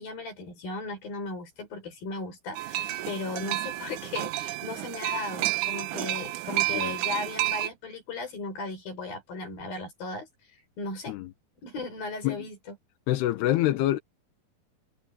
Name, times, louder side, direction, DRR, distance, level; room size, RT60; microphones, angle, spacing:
voice 1, 0.0-10.3 10.8-11.2 11.6-12.8, left 3 dB, 65° left, 8.5 m, -36 dB
sound 1, 2.6-7.7, right 16 dB, 75° right, 1.9 m, -30 dB
voice 2, 13.1-14.0, left 14 dB, 90° left, 3.1 m, -25 dB
omnidirectional pair, 4.5 m